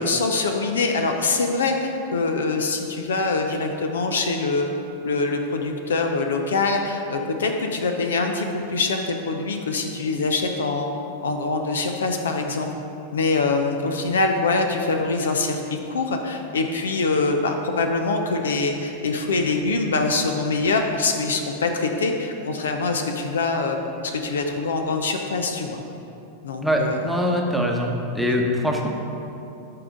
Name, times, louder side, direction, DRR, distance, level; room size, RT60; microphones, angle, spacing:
voice 1, 0.0-4.7 5.0-10.9 11.2-12.7 13.1-25.8 26.4-27.0, left 3 dB, 65° left, 4 dB, 0.6 m, -24 dB
voice 2, 26.6-28.9, equal, ahead, 0 dB, 1.0 m, -23 dB
13.5 x 4.8 x 3.7 m, 2.9 s
figure-of-eight pair, 90°, 0 cm